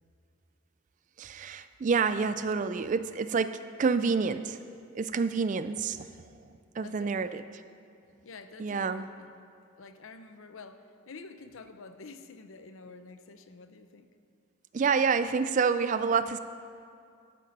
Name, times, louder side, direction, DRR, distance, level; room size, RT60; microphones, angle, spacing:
voice 1, 1.2-4.6 4.9-6.1 6.7-7.4 8.6-9.1 14.7-16.4, right 5 dB, 35° right, 12 dB, 0.3 m, -28 dB
voice 2, 6.8-7.4 8.2-9.3 9.8-14.1, left 4 dB, 70° left, 10 dB, 0.6 m, -48 dB
12.5 x 7.7 x 5.3 m, 2.3 s
head